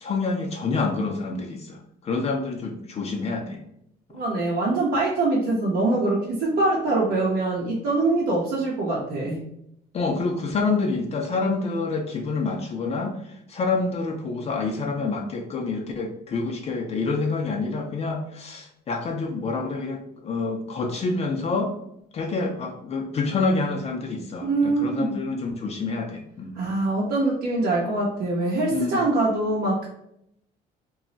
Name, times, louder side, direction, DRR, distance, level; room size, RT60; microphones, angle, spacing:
voice 1, 0.0-1.8 2.0-3.6 9.9-13.1 13.5-21.7 22.1-26.6 28.7-29.0, left 3 dB, 40° left, 2 dB, 0.4 m, -27 dB
voice 2, 4.1-9.4 24.4-25.2 26.6-29.9, right 2 dB, 65° right, -4 dB, 0.7 m, -24 dB
2.3 x 2.0 x 3.8 m, 0.74 s
cardioid pair, 110°, 17 cm